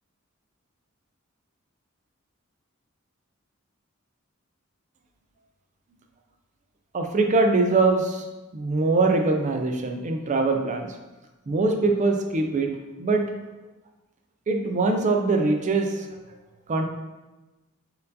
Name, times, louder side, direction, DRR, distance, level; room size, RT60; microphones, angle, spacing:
voice 1, 6.9-8.2 8.5-10.9 11.5-12.7 13.0-13.3 14.5-16.1 16.7-16.8, right 3 dB, 35° right, 4 dB, 0.4 m, -22 dB
4.3 x 3.8 x 2.7 m, 1.1 s
head